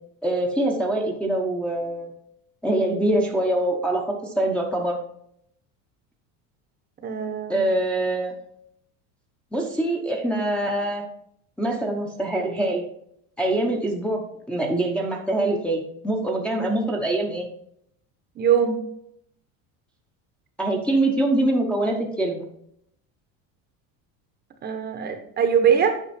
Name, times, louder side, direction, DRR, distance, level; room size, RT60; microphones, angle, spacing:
voice 1, 0.2-2.1 2.6-5.0 7.5-8.4 9.5-11.0 11.6-12.9 13.4-14.2 14.5-17.5 20.6-22.5, right 1 dB, 5° left, -2 dB, 0.9 m, -24 dB
voice 2, 7.0-7.6 18.4-18.8 24.6-26.0, right 7 dB, 25° right, 6 dB, 1.0 m, -22 dB
9.0 x 5.7 x 4.3 m, 0.71 s
cardioid pair, 165°, 38 cm